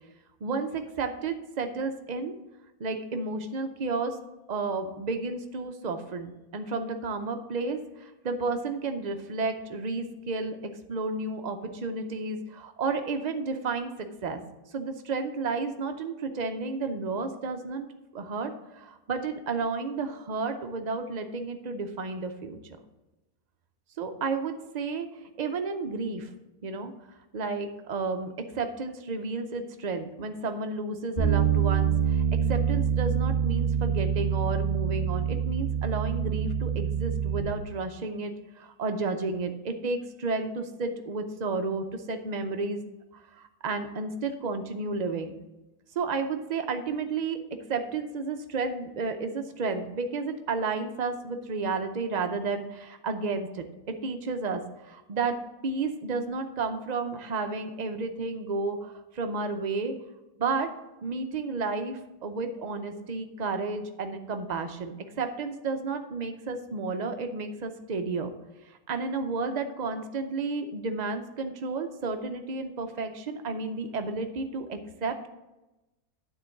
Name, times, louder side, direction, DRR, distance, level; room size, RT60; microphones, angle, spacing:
voice 1, 0.4-2.4 2.8-4.2 4.5-10.6 10.9-13.9 14.2-14.4 14.7-17.9 18.1-22.6 24.0-25.1 25.4-26.3 26.6-26.9 27.3-42.8 43.1-45.4 46.0-55.4 55.6-59.9 60.4-60.7 61.0-68.3 68.9-75.3, right 4 dB, 55° right, 6 dB, 0.4 m, -32 dB
Bass guitar, 31.2-37.4, right 8 dB, 20° left, 2.5 m, -26 dB
9.3 x 3.8 x 7.0 m, 1.0 s
omnidirectional pair, 1.6 m